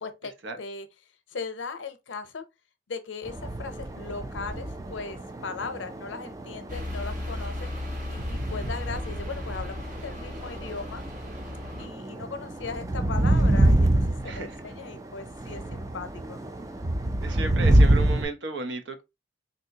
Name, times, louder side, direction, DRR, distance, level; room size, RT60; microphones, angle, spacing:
voice 1, 0.0-0.3 0.6-0.9 1.3-2.4 2.9-11.0 11.8-16.4, left 4 dB, 85° left, 0.6 m, -38 dB
sound 1, 3.3-18.2, right 1 dB, 20° right, 0.3 m, -26 dB
sound 2, 6.7-11.9, left 1 dB, 45° right, 1.0 m, -36 dB
voice 2, 14.2-14.6 17.2-19.0, right 3 dB, 75° right, 0.6 m, -33 dB
3.5 x 2.7 x 2.7 m
head